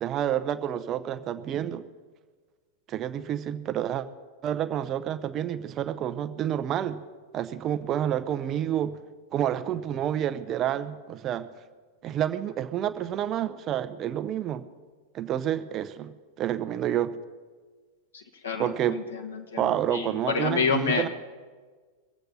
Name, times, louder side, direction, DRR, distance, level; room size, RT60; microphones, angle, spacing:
voice 1, 0.0-1.8 2.9-4.1 4.4-7.0 7.3-9.0 9.3-11.5 12.0-14.6 15.1-17.2 18.6-19.0 19.6-21.1, right 10 dB, 30° right, 12 dB, 0.8 m, -29 dB
voice 2, 18.1-21.1, left 5 dB, 70° left, 2 dB, 1.9 m, -29 dB
23.0 x 8.0 x 5.5 m, 1.4 s
figure-of-eight pair, 90°, 0 cm